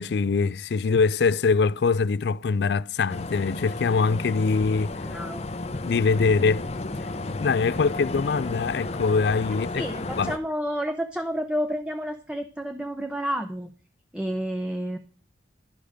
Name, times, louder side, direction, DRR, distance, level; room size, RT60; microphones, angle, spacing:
voice 1, 0.0-4.9 5.8-6.7 7.3-9.8 10.2-10.3, left 4 dB, 70° left, 0.4 m, -23 dB
sound 1, 3.1-10.4, left 2 dB, 35° left, 0.7 m, -33 dB
voice 2, 5.1-5.5 9.8-13.7 14.1-15.0, equal, 5° right, 0.8 m, -30 dB
12.0 x 5.1 x 6.4 m
head